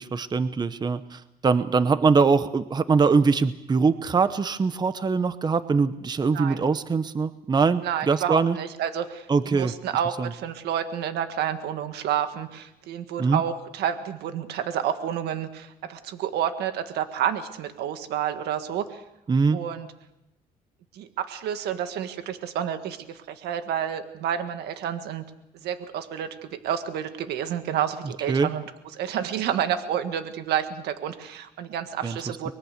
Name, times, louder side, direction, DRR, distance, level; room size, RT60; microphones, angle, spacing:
voice 1, 0.0-8.6 9.3-9.7 10.2-10.3 13.2-13.4 19.3-19.6 28.3-28.5 32.0-32.2 32.5-32.6, right 4 dB, 25° right, 13 dB, 0.9 m, -22 dB
voice 2, 7.8-19.0 19.5-19.9 20.9-25.2 25.6-28.6 28.9-32.5, right 9 dB, 75° right, 9 dB, 1.7 m, -29 dB
24.0 x 22.0 x 6.7 m, 0.88 s
cardioid pair, 110°, 17 cm